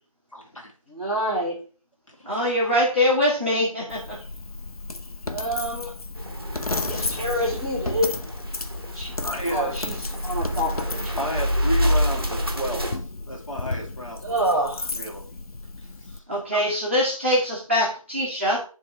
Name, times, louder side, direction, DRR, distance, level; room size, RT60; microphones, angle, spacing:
voice 1, 0.3-0.7 2.2-2.5 9.2-9.8 11.2-15.3 15.8-16.2 16.5-16.6, equal, 65° left, 0 dB, 2.1 m, -33 dB
voice 2, 0.9-1.6 5.2-5.9 6.7-8.2 8.7-9.2 9.5-11.4 12.2-12.3 14.2-14.9, equal, 10° left, -14 dB, 1.6 m, -28 dB
voice 3, 2.2-4.2 16.3-18.6, left 1 dB, 20° right, -6 dB, 1.2 m, -23 dB
Coin (dropping), 3.9-16.2, left 2 dB, 85° left, 0.7 m, -34 dB
sound 1, 6.2-13.0, equal, 40° right, 1.0 m, -28 dB
10.0 x 3.4 x 3.0 m, 0.37 s
figure-of-eight pair, 180°, 18 cm